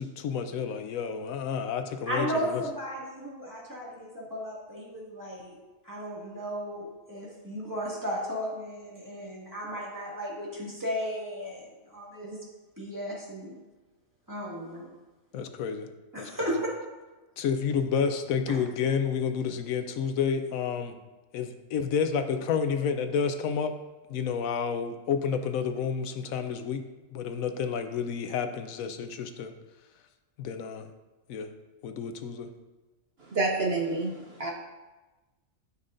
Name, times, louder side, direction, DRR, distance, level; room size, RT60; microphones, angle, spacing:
voice 1, 0.0-2.6 15.3-15.9 16.2-16.5 17.4-21.0 21.3-23.7 24.1-26.8 27.1-29.5 30.4-30.9 31.3-31.5 31.8-32.5, left 6 dB, 80° left, 8 dB, 1.0 m, -30 dB
voice 2, 2.1-5.6 5.8-12.4 12.8-13.6 14.3-14.9 16.1-16.7 18.5-18.6, equal, 15° right, -6 dB, 2.1 m, -35 dB
voice 3, 33.3-34.5, right 3 dB, 55° right, 0 dB, 0.9 m, -28 dB
13.0 x 5.6 x 2.6 m, 1.2 s
omnidirectional pair, 1.4 m